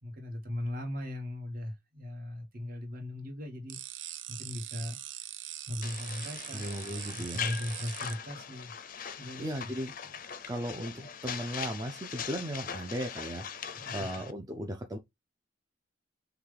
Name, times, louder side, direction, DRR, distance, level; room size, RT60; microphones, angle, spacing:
voice 1, 0.0-3.8 4.3-5.0 5.7-6.8 7.1-8.7 9.2-9.5 13.7-14.1, left 1 dB, 50° right, 1.6 m, -38 dB
sound 1, 3.7-8.1, right 12 dB, 70° right, 0.6 m, -42 dB
sound 2, 5.8-14.3, left 7 dB, 45° left, 0.5 m, -41 dB
voice 2, 6.5-7.4 9.4-10.1 10.5-15.0, equal, 20° right, 0.5 m, -37 dB
5.9 x 2.3 x 3.4 m
head